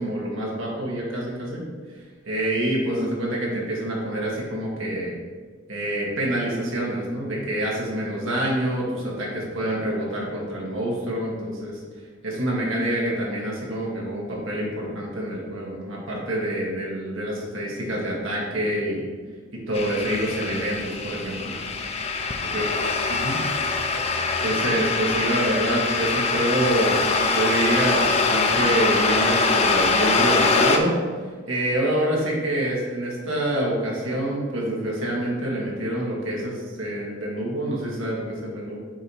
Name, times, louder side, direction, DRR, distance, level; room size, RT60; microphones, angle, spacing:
voice 1, 0.0-1.6 2.3-5.2 5.7-11.8 12.2-19.1 19.5-21.6 22.5-22.6 23.1-23.4 24.4-31.0 31.5-38.8, right 1 dB, 85° right, -3 dB, 2.0 m, -26 dB
sound 1, 19.7-30.8, left 3 dB, 30° left, 0.6 m, -23 dB
7.3 x 3.1 x 5.6 m, 1.5 s
head